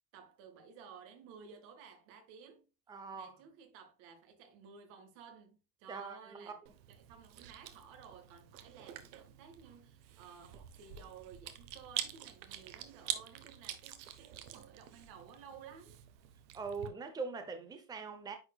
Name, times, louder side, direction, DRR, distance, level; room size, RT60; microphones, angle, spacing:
voice 1, 0.1-2.7 3.1-6.6 6.9-16.0, right 6 dB, 60° right, 1.9 m, -55 dB
voice 2, 2.9-3.3 5.9-6.5 16.5-18.4, right 4 dB, 10° right, 0.6 m, -42 dB
Chewing mastication, 6.7-16.9, right 12 dB, 85° right, 1.2 m, -46 dB
9.8 x 4.3 x 2.3 m
cardioid pair, 150°, 49 cm